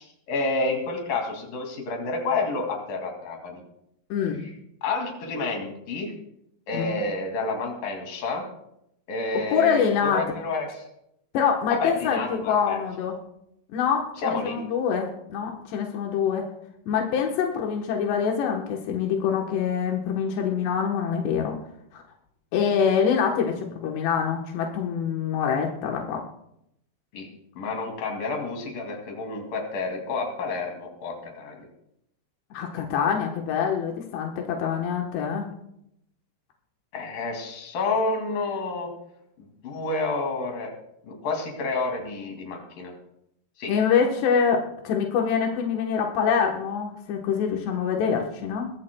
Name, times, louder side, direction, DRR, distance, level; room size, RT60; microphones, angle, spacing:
voice 1, 0.0-3.6 4.4-4.5 4.8-6.1 6.7-8.5 9.1-10.8 11.7-12.8 14.2-14.6 27.1-27.3 27.6-31.6 36.9-38.9 39.4-40.7 41.0-42.9 43.6-43.7, left 3 dB, 60° left, 2 dB, 3.9 m, -29 dB
voice 2, 4.1-4.4 6.7-7.0 9.5-10.2 11.3-12.2 12.4-13.2 13.7-16.5 16.9-21.6 21.9-22.0 22.5-26.2 32.5-35.5 43.7-48.7, left 7 dB, 85° left, 1 dB, 3.3 m, -25 dB
22.0 x 15.0 x 2.2 m, 0.77 s
omnidirectional pair, 4.7 m